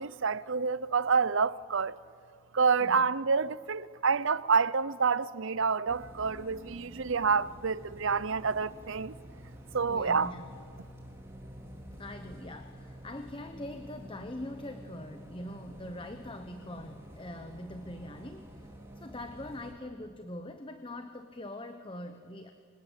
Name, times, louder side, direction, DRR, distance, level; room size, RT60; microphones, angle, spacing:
voice 1, 0.0-2.0 2.5-9.1 9.7-10.3, right 5 dB, 60° right, 0.7 m, -28 dB
Bus, 5.9-19.7, equal, 10° right, 3.4 m, -49 dB
voice 2, 9.9-10.4 12.0-18.7 18.9-22.5, left 1 dB, 25° left, 1.0 m, -43 dB
28.5 x 25.0 x 8.2 m
head